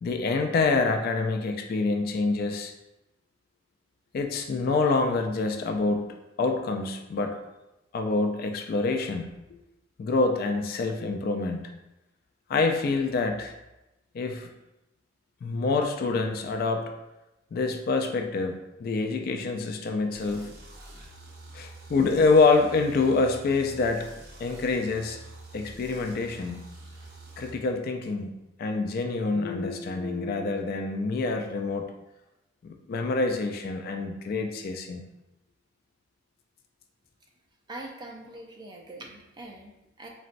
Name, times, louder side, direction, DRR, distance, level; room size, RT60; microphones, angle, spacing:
voice 1, 0.0-2.7 4.1-7.4 7.9-9.3 10.0-11.7 12.5-13.5 14.1-14.5 15.4-16.9 17.5-20.5 21.5-24.1 24.4-25.2 25.5-26.7 27.4-28.3 28.6-31.9 32.6-35.0, left 3 dB, 50° left, 5 dB, 0.3 m, -26 dB
sound 1, 20.1-27.5, right 2 dB, 55° right, 0.7 m, -46 dB
voice 2, 37.7-40.1, right 2 dB, 20° right, 1 dB, 0.4 m, -43 dB
3.9 x 2.1 x 2.5 m, 0.94 s
head